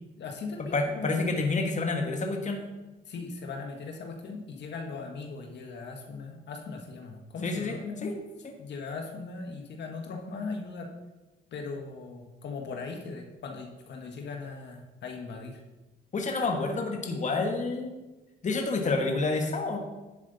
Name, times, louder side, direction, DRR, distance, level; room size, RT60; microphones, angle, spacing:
voice 1, 0.2-1.4 3.1-8.2 8.6-10.9 11.5-15.6, left 4 dB, 60° left, 2 dB, 1.4 m, -39 dB
voice 2, 0.7-2.6 7.4-7.8 8.0-8.2 16.1-18.0 18.4-19.8, left 3 dB, 35° left, 3 dB, 1.4 m, -28 dB
11.0 x 7.3 x 4.0 m, 1.1 s
cardioid pair, 90°, 20 cm